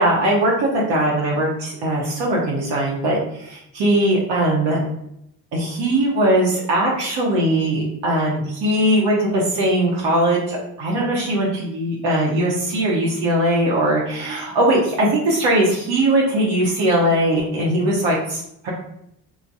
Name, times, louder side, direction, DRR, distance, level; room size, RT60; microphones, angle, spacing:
voice 1, 0.0-4.8 5.5-18.7, right 1 dB, 70° right, -4 dB, 0.9 m, -20 dB
3.3 x 2.2 x 2.6 m, 0.76 s
hypercardioid pair, 60°, 44 cm